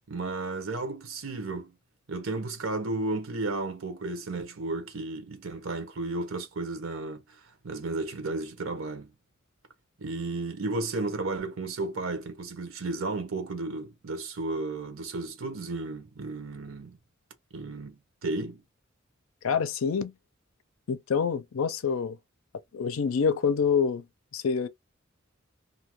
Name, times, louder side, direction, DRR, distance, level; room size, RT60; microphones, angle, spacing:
voice 1, 0.1-1.7 2.1-9.1 10.0-17.0 17.5-18.6, right 2 dB, 85° right, 0.9 m, -33 dB
voice 2, 19.4-20.1 20.9-22.2 22.7-24.0 24.3-24.7, left 6 dB, 80° left, 0.5 m, -26 dB
2.7 x 2.2 x 3.0 m
head